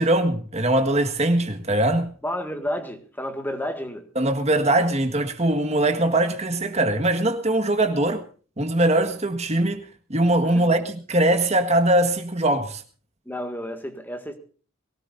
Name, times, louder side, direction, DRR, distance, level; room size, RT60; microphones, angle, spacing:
voice 1, 0.0-2.2 4.1-8.2 8.6-12.8, right 1 dB, 30° right, 1.7 m, -21 dB
voice 2, 2.2-4.1 10.6-10.8 13.3-14.4, left 1 dB, 10° left, 1.8 m, -31 dB
23.0 x 18.0 x 2.6 m
head